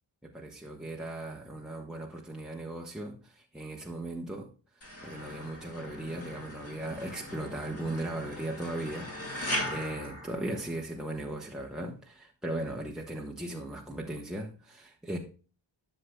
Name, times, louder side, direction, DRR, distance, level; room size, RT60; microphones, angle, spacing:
voice 1, 0.2-4.5 5.0-15.2, right 1 dB, ahead, 1.0 m, -38 dB
sound 1, 4.8-11.1, left 1 dB, 30° left, 2.3 m, -39 dB
11.5 x 6.6 x 2.2 m
wide cardioid pair, 75°, 46 cm